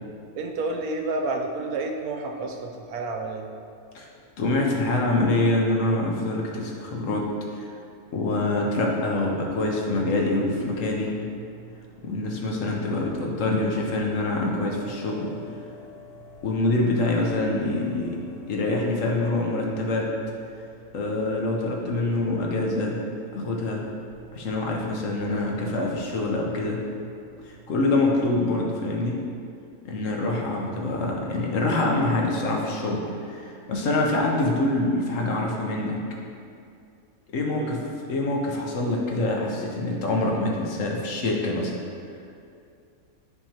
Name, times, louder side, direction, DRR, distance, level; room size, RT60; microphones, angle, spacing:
voice 1, 0.4-3.5 37.5-37.8, right 3 dB, 80° right, 2 dB, 1.1 m, -30 dB
voice 2, 4.4-7.2 7.6-7.7 8.1-11.1 12.0-15.3 16.4-18.1 18.5-20.1 20.9-23.0 23.3-23.8 24.3-26.8 27.7-29.2 29.8-33.0 33.3-36.0 37.3-37.8 38.1-41.8, left 2 dB, 65° left, -1 dB, 1.1 m, -25 dB
sound 1, 9.1-28.5, right 4 dB, 30° left, 1.0 m, -48 dB
10.5 x 3.5 x 2.8 m, 2.4 s
omnidirectional pair, 1.6 m